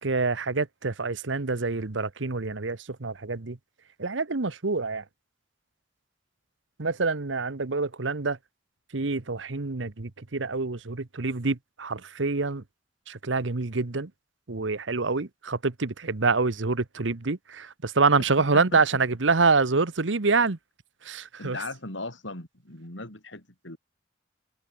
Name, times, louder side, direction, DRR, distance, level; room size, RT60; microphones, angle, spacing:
voice 1, 0.0-3.6 4.0-5.0 6.8-8.4 8.9-12.6 13.1-14.1 14.5-20.6 21.0-21.6, right 4 dB, 80° right, 1.1 m, -26 dB
voice 2, 18.5-19.0 21.4-23.8, left 2 dB, 80° left, 7.0 m, -38 dB
head